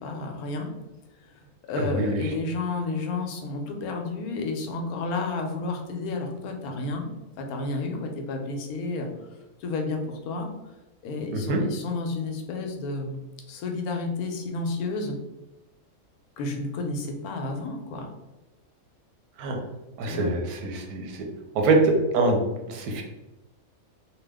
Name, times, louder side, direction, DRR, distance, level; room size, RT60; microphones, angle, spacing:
voice 1, 0.0-0.7 1.2-7.1 7.4-9.1 9.6-10.5 11.0-13.2 13.5-15.2 16.4-18.1 20.0-20.3, left 3 dB, 90° left, 3 dB, 1.1 m, -31 dB
voice 2, 1.8-2.2 11.3-11.6 19.4-19.6 20.0-21.3 21.5-23.0, right 2 dB, 85° right, 2 dB, 1.1 m, -24 dB
2.8 x 2.4 x 3.3 m, 1.0 s
omnidirectional pair, 1.5 m